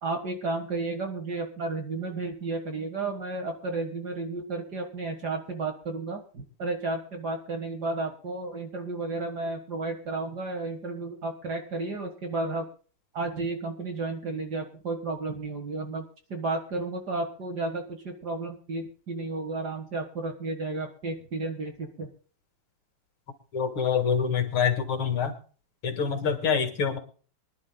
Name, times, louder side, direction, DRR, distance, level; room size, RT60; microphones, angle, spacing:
voice 1, 0.0-12.7 13.1-22.1, right 3 dB, 50° right, 5 dB, 2.1 m, -32 dB
voice 2, 23.5-25.3 25.8-27.0, left 7 dB, 70° left, 7 dB, 2.7 m, -26 dB
24.5 x 11.0 x 2.3 m, 0.41 s
omnidirectional pair, 2.4 m